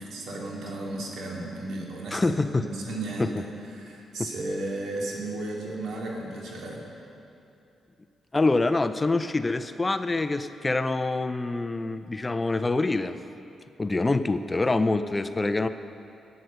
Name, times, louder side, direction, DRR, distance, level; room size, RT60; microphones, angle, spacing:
voice 1, 0.0-3.5 3.7-6.8, right 2 dB, 80° right, -2 dB, 2.6 m, -34 dB
voice 2, 2.1-2.7 4.2-4.3 8.3-13.2 13.8-15.7, left 2 dB, 20° left, 11 dB, 0.5 m, -25 dB
13.5 x 9.3 x 6.6 m, 2.8 s
cardioid pair, 90°, 0 cm